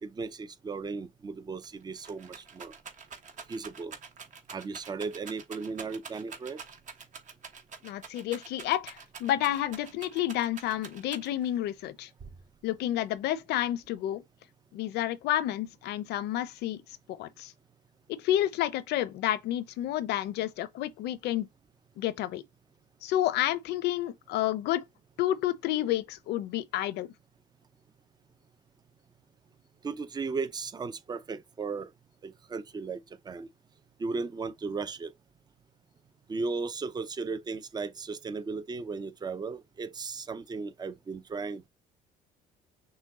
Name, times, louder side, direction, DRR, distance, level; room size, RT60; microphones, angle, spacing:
voice 1, 0.0-2.7 3.5-4.0 4.5-6.6 29.8-31.9 32.2-33.5 34.0-35.1 36.3-41.7, right 4 dB, 25° right, 0.6 m, -36 dB
Rattle, 1.3-1.4 1.6-11.6 12.2-12.8, right 5 dB, 45° right, 1.3 m, -46 dB
voice 2, 7.8-12.1 12.6-14.2 14.7-16.8 17.1-17.5 18.1-21.5 22.0-22.4 23.0-24.8 25.2-27.1, left 13 dB, 80° left, 0.7 m, -30 dB
6.3 x 2.3 x 3.7 m
cardioid pair, 110°, 17 cm